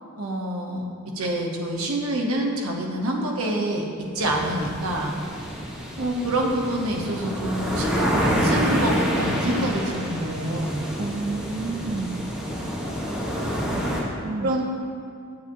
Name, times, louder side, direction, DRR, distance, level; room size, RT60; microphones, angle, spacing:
voice 1, 0.2-0.8 1.1-3.9 4.1-5.2 6.0-10.8 14.4-14.6, right 1 dB, 75° right, -1 dB, 1.1 m, -26 dB
sound 1, 4.2-14.0, equal, ahead, 1.1 m, -28 dB
voice 2, 11.0-12.3 13.5-14.5, right 3 dB, 30° right, 3 dB, 0.3 m, -31 dB
8.4 x 8.0 x 2.7 m, 2.3 s
head